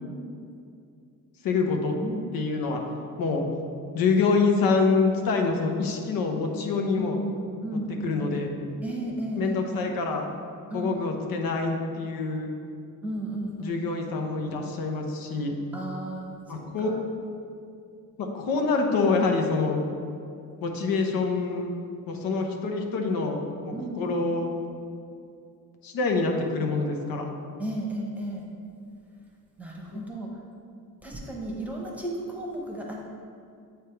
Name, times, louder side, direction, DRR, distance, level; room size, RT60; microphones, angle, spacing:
voice 1, 1.4-1.9 2.3-2.8 3.2-3.4 3.9-7.2 8.0-8.5 9.3-10.3 10.7-12.5 13.6-15.5 16.5-16.9 18.2-19.8 20.6-21.7 22.1-23.4 23.6-24.5 25.8-27.3 29.9-30.0, left 4 dB, 85° left, 3 dB, 0.9 m, -26 dB
voice 2, 7.0-9.9 10.7-11.0 13.0-13.9 15.7-17.1 23.7-24.1 27.6-28.5 29.6-30.3 31.0-33.0, right 1 dB, 5° right, -3 dB, 0.9 m, -34 dB
8.0 x 3.5 x 4.5 m, 2.4 s
cardioid pair, 140°, 34 cm